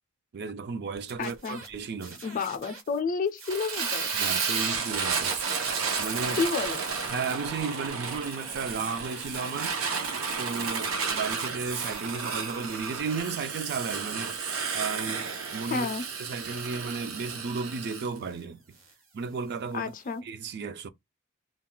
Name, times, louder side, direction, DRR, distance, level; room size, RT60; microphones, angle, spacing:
voice 1, 0.3-2.2 4.1-5.4 6.0-6.4 7.1-9.8 10.4-14.4 14.7-15.9 16.2-18.6 19.1-19.9 20.2-20.9, right 5 dB, 55° right, 0.4 m, -34 dB
sound 1, 0.9-3.0 3.3-9.7 10.0-12.3 12.7-20.2, right 2 dB, 70° right, 1.2 m, -49 dB
voice 2, 1.2-1.6 2.2-4.1 6.3-6.9 15.6-16.1 19.7-20.2, left 5 dB, 40° left, 0.4 m, -30 dB
Fire, 3.5-18.1, right 5 dB, 90° right, 0.6 m, -32 dB
2.3 x 2.2 x 3.8 m
head